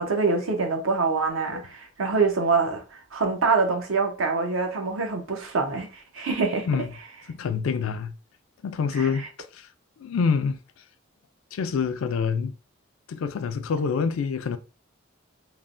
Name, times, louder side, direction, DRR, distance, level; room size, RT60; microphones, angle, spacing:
voice 1, 0.0-2.8 3.1-6.7 9.0-9.1, right 4 dB, 80° right, 0.7 m, -25 dB
voice 2, 7.3-8.1 8.6-9.3 9.5-9.7 10.0-10.6 11.5-12.5 13.1-14.6, left 5 dB, 80° left, 0.3 m, -26 dB
3.1 x 2.1 x 2.5 m
head